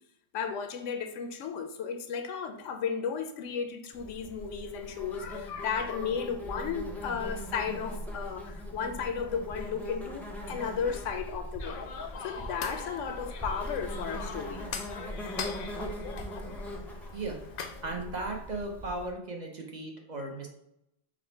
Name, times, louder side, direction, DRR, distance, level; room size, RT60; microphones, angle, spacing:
voice 1, 0.3-11.9 12.2-14.7, left 6 dB, 90° left, 0.9 m, -34 dB
Insect, 3.9-19.1, equal, ahead, 0.4 m, -40 dB
sound 1, 11.6-17.8, left 6 dB, 60° left, 0.6 m, -41 dB
voice 2, 17.8-20.5, right 2 dB, 45° right, 0.7 m, -36 dB
5.0 x 2.1 x 4.3 m
omnidirectional pair, 1.2 m